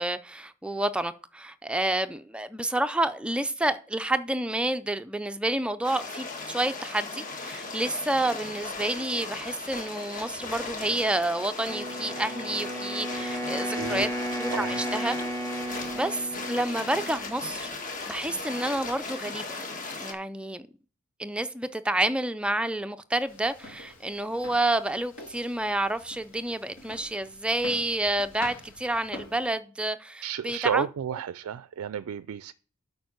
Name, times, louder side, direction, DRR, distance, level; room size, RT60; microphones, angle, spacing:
voice 1, 0.0-14.1 14.4-15.2 15.9-17.7 18.1-19.5 20.0-20.6 21.2-30.9, right 1 dB, 5° right, 0.4 m, -29 dB
sound 1, 5.8-20.1, left 3 dB, 35° left, 1.6 m, -37 dB
Wind instrument woodwind instrument, 11.7-17.6, equal, 10° left, 1.6 m, -34 dB
voice 2, 13.5-14.1 14.5-14.8 30.2-32.5, right 8 dB, 90° right, 0.4 m, -32 dB
sound 2, 23.3-29.5, left 2 dB, 70° left, 3.6 m, -46 dB
7.9 x 5.2 x 6.5 m
head